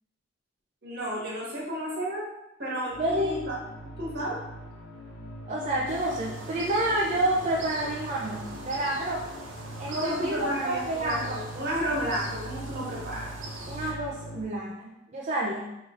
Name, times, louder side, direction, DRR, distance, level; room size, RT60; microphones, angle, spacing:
voice 1, 0.8-2.2 2.6-3.2 3.5-3.6 4.0-4.4 9.9-13.3, equal, 55° right, -5 dB, 1.4 m, -32 dB
sound 1, 2.9-14.4, right 1 dB, 65° left, 0.9 m, -42 dB
voice 2, 3.0-3.4 5.5-9.3 9.8-11.4 13.7-15.7, right 1 dB, 40° right, -4 dB, 0.5 m, -29 dB
sound 2, 5.9-13.9, right 2 dB, 80° right, 0.7 m, -42 dB
5.1 x 3.2 x 2.4 m, 0.89 s
head